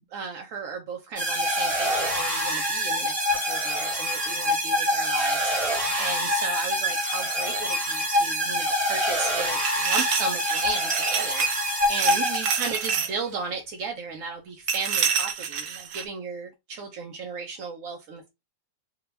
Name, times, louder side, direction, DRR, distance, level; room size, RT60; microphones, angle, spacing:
voice 1, 0.1-18.3, right 5 dB, 65° right, 0.9 m, -35 dB
sound 1, 1.2-13.0, equal, 25° right, 1.0 m, -26 dB
sound 2, 9.6-11.7 12.0-13.1 14.7-16.1, right 7 dB, 80° right, 1.3 m, -28 dB
3.7 x 2.3 x 3.3 m
omnidirectional pair, 1.9 m